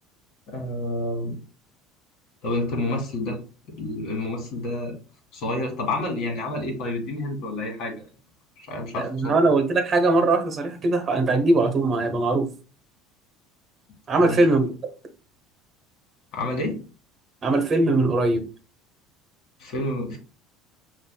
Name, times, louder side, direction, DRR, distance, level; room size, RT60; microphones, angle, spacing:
voice 1, 0.5-1.3 2.4-3.4 3.8-5.0 5.3-7.9 8.6-9.4 14.1-14.4 16.3-16.8 19.6-20.2, left 2 dB, 65° left, 2 dB, 1.6 m, -29 dB
voice 2, 8.9-12.5 14.1-14.7 17.4-18.5, right 2 dB, 35° right, 7 dB, 0.9 m, -21 dB
5.8 x 2.6 x 2.2 m, 0.36 s
supercardioid pair, 100°, 0 cm